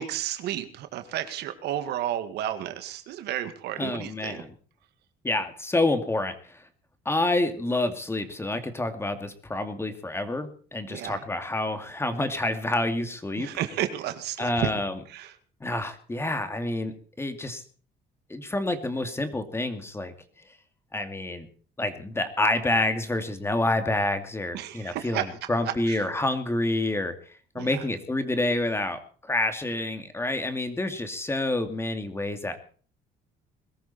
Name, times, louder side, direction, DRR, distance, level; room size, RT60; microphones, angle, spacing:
voice 1, 0.0-4.4 10.9-11.2 13.4-14.8 15.1-15.4 24.5-26.0 27.6-27.8, right 11 dB, 75° right, 9 dB, 2.1 m, -32 dB
voice 2, 3.8-4.5 5.2-6.6 7.0-13.5 14.4-14.9 15.6-17.6 18.3-20.1 20.9-21.5 21.8-27.1 27.5-32.7, left 2 dB, 15° left, 8 dB, 2.5 m, -28 dB
21.5 x 13.5 x 4.3 m, 0.42 s
cardioid pair, 110°, 17 cm